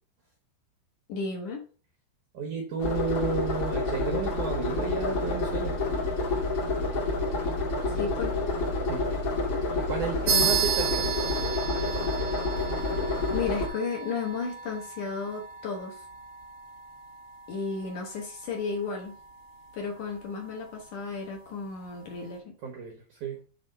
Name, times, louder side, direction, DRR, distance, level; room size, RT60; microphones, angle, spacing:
voice 1, 1.1-1.6 8.0-8.4 10.3-10.5 13.3-16.0 17.5-19.2 19.7-22.5, left 5 dB, 70° left, 1 dB, 1.9 m, -33 dB
voice 2, 2.3-5.7 8.9-9.1 9.8-11.2 22.6-23.4, right 6 dB, 85° right, 2 dB, 1.7 m, -32 dB
sound 1, 2.8-13.7, left 2 dB, 45° left, 1.9 m, -29 dB
sound 2, 10.3-20.2, right 6 dB, 65° right, 1.5 m, -34 dB
7.1 x 3.9 x 5.4 m, 0.38 s
omnidirectional pair, 5.3 m